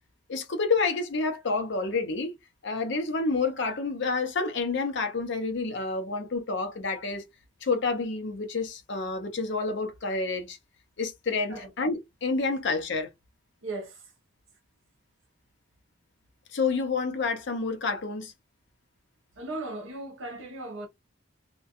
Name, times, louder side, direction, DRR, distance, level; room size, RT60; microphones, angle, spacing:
voice 1, 0.3-2.4 2.6-7.3 7.6-10.6 11.0-13.1 16.5-18.3, left 4 dB, 55° left, 0.6 m, -29 dB
voice 2, 13.6-14.1 19.3-20.9, right 2 dB, 65° right, 1.0 m, -37 dB
2.5 x 2.2 x 2.4 m
head